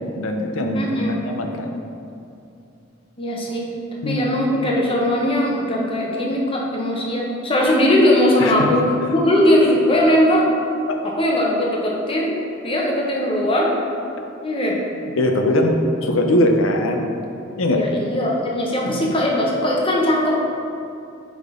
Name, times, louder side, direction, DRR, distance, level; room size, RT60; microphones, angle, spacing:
voice 1, 0.1-1.8 4.0-4.3 8.4-8.7 15.2-17.1 17.6-17.8 18.8-19.1, left 1 dB, 85° left, 3 dB, 0.6 m, -21 dB
voice 2, 0.7-1.2 3.2-3.7 3.9-10.5 11.0-12.3 12.6-13.7 14.4-14.8 17.8-20.5, left 1 dB, 25° left, -2 dB, 1.0 m, -19 dB
9.4 x 3.7 x 3.7 m, 2.6 s
head